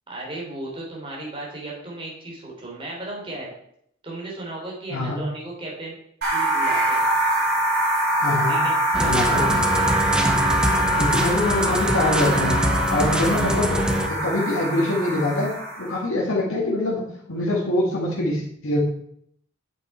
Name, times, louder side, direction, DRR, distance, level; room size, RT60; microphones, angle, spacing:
voice 1, 0.1-3.5 4.0-5.9 6.3-7.0 8.5-9.6, right 2 dB, 25° right, -3 dB, 3.5 m, -35 dB
voice 2, 4.9-5.2 8.2-8.6 9.0-9.5 10.9-12.6 12.9-13.8 14.1-15.5 15.8-18.8, left 1 dB, 90° left, -4 dB, 1.9 m, -24 dB
sound 1, 6.2-15.9, right 1 dB, 50° right, 3.6 m, -23 dB
sound 2, 8.9-14.1, equal, 5° right, 0.7 m, -24 dB
8.4 x 7.3 x 4.4 m, 0.70 s
head